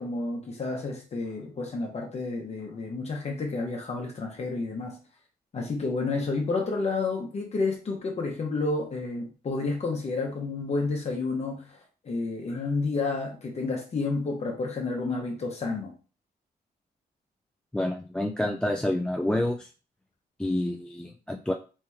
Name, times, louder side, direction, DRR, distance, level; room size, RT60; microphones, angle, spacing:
voice 1, 0.0-5.0 5.5-15.9, left 3 dB, 40° left, 1 dB, 0.9 m, -30 dB
voice 2, 17.7-19.7 20.4-21.5, left 1 dB, 5° left, 3 dB, 0.3 m, -28 dB
3.2 x 2.9 x 3.4 m, 0.35 s
cardioid pair, 95°, 16 cm